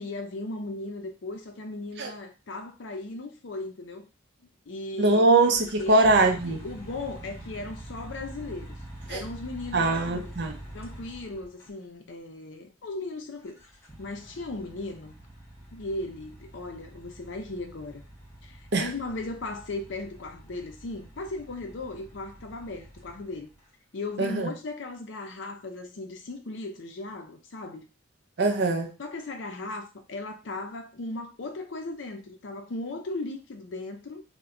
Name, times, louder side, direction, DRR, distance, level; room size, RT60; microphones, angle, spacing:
voice 1, 0.0-4.1 4.7-5.3 5.8-8.7 9.1-10.4 10.7-13.6 14.0-15.1 15.7-18.0 18.4-23.5 23.9-27.9 29.0-34.2, left 2 dB, 65° left, 0.5 m, -37 dB
voice 2, 5.0-6.6 9.1-9.2 9.7-10.6 18.7-18.9 24.2-24.5 28.4-28.9, right 2 dB, 55° right, 0.5 m, -22 dB
sound 1, 5.3-11.7 13.5-23.6, right 1 dB, 15° left, 0.7 m, -45 dB
2.2 x 2.1 x 3.6 m
head